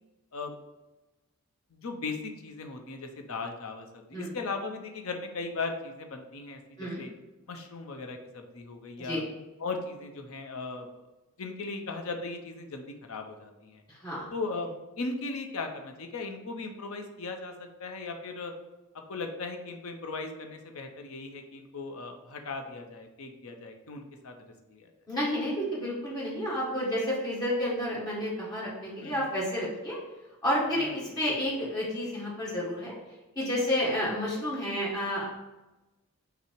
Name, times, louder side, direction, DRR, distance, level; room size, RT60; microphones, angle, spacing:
voice 1, 1.7-7.1 7.5-9.2 9.6-10.9 11.4-13.8 14.3-14.7 15.0-17.5 17.8-18.5 19.1-24.3 24.7-24.9 29.0-29.3 30.7-30.9, left 3 dB, 65° left, 5 dB, 0.6 m, -37 dB
voice 2, 13.9-14.3 25.1-30.0 30.4-32.9 33.3-35.3, equal, 15° left, -6 dB, 1.5 m, -30 dB
5.5 x 2.0 x 4.5 m, 1.1 s
head